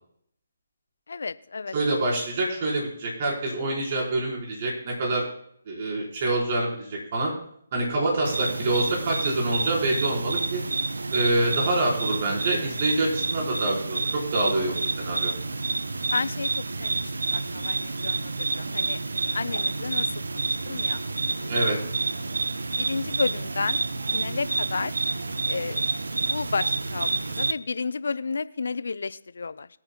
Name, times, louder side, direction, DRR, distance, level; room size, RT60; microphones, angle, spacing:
voice 1, 1.1-1.7 16.1-19.0 19.3-20.1 20.3-21.0 21.4-21.5 22.8-23.8 24.1-25.1 25.5-25.9 26.2-29.7, left 4 dB, 65° left, 16 dB, 0.5 m, -32 dB
voice 2, 1.7-5.3 5.7-7.3 7.7-10.6 11.1-15.3 21.5-21.8, right 2 dB, 40° right, -2 dB, 4.2 m, -26 dB
sound 1, 8.2-27.5, right 3 dB, 75° right, 0.7 m, -29 dB
23.0 x 8.9 x 2.2 m, 0.68 s
figure-of-eight pair, 145°, 0 cm